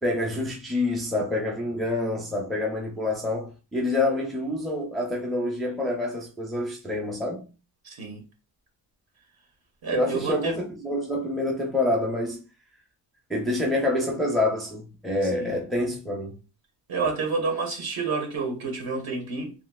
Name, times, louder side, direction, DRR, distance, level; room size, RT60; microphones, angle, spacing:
voice 1, 0.0-7.5 9.9-12.4 13.3-16.4, left 2 dB, ahead, 0.5 m, -27 dB
voice 2, 7.8-8.2 9.8-10.5 15.2-15.5 16.9-19.5, right 4 dB, 55° right, 1.3 m, -29 dB
3.1 x 2.9 x 2.3 m
cardioid pair, 150°, 43 cm